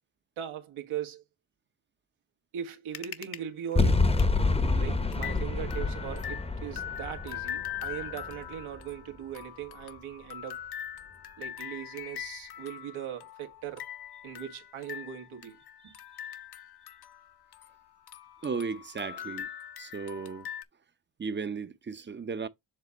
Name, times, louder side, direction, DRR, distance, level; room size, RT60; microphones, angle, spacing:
voice 1, 0.4-1.2 2.5-4.1 4.8-10.6 11.4-13.9 14.2-16.0, right 10 dB, 80° right, 1.8 m, -39 dB
sound 1, 2.9-3.4 3.7-3.8 4.2-4.3 4.7-4.8 5.1-17.8 18.1-20.6, left 10 dB, 50° left, 0.8 m, -42 dB
sound 2, 3.8-8.9, left 3 dB, 10° left, 0.8 m, -28 dB
voice 2, 18.4-19.5 19.8-20.5 21.2-22.5, right 5 dB, 25° right, 0.7 m, -35 dB
7.5 x 3.6 x 4.1 m
cardioid pair, 115°, 48 cm